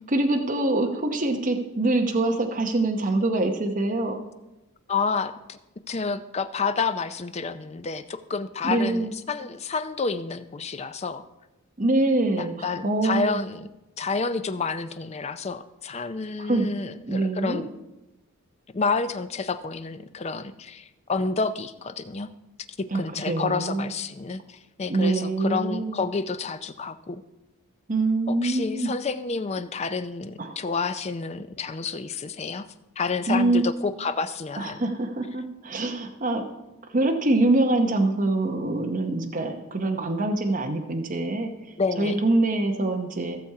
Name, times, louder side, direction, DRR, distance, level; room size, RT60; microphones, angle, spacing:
voice 1, 0.1-4.2 8.6-9.1 11.8-13.4 16.4-16.7 17.1-17.6 22.9-23.9 24.9-26.0 27.9-28.9 30.4-30.6 33.3-33.6 34.6-36.4 36.9-41.5 42.0-43.4, right 2 dB, 35° right, 3 dB, 0.9 m, -24 dB
voice 2, 4.9-5.6 5.9-11.2 12.4-13.7 14.0-17.7 18.7-22.3 22.8-27.2 28.3-32.7 33.0-34.8 41.8-42.2, left 4 dB, 30° left, 11 dB, 0.4 m, -29 dB
15.0 x 7.0 x 4.7 m, 0.98 s
head